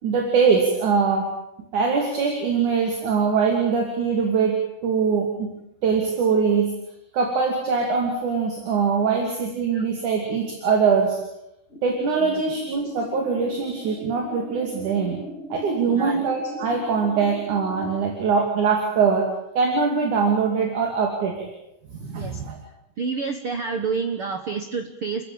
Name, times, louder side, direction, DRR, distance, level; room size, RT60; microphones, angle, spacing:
voice 1, 0.0-1.3 1.7-5.5 5.8-6.7 7.1-11.2 11.8-15.2 15.5-19.3 19.6-21.5 21.9-22.6, right 5 dB, 50° right, 3 dB, 3.9 m, -22 dB
sound 1, 11.7-18.0, right 1 dB, 20° left, 2.1 m, -39 dB
voice 2, 15.8-16.2 22.1-22.4 23.0-25.2, right 5 dB, 80° right, 6 dB, 1.2 m, -29 dB
29.5 x 14.5 x 8.9 m, 0.86 s
omnidirectional pair, 4.7 m